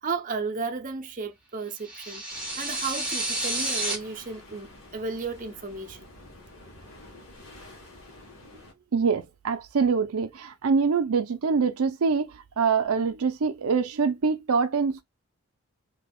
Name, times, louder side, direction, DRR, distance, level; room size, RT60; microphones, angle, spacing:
voice 1, 0.0-2.2 2.6-6.3, right 4 dB, 35° right, 0.6 m, -34 dB
sound 1, 1.8-3.9, right 2 dB, 5° right, 1.0 m, -30 dB
sound 2, 2.3-8.7, left 1 dB, 70° left, 1.7 m, -49 dB
voice 2, 8.9-15.0, right 5 dB, 85° right, 0.5 m, -25 dB
3.5 x 2.9 x 2.2 m
head